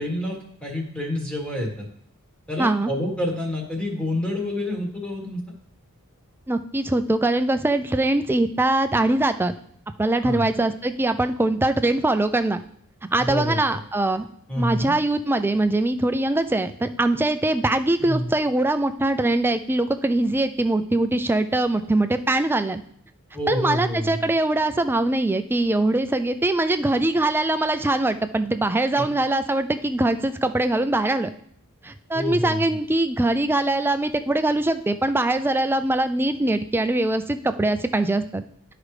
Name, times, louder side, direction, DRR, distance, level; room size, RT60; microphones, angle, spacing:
voice 1, 0.0-1.8 2.5-5.4 10.2-10.4 13.2-13.8 14.5-14.9 18.0-18.3 23.3-24.3 29.0-29.1 32.1-32.6, left 1 dB, 5° left, -1 dB, 1.5 m, -28 dB
voice 2, 2.6-2.9 6.5-9.5 10.0-12.6 13.1-14.3 14.6-22.8 23.5-31.3 31.8-38.4, right 2 dB, 10° right, 9 dB, 0.3 m, -22 dB
12.0 x 4.9 x 3.2 m, 0.67 s
head